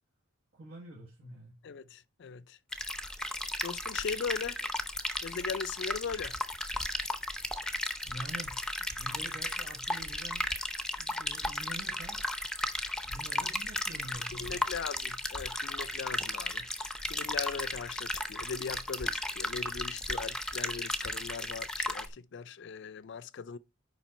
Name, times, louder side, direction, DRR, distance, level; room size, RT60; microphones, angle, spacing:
voice 1, 0.5-1.5 8.0-8.6 8.9-10.5 11.0-12.2 13.1-14.6, right 1 dB, 70° right, 1.5 m, -46 dB
voice 2, 1.6-2.6 3.6-4.7 5.2-6.4 14.3-16.7 17.1-23.6, left 6 dB, 55° left, 0.4 m, -39 dB
sound 1, 2.7-22.1, left 1 dB, 5° left, 0.6 m, -35 dB
7.4 x 5.1 x 4.1 m
head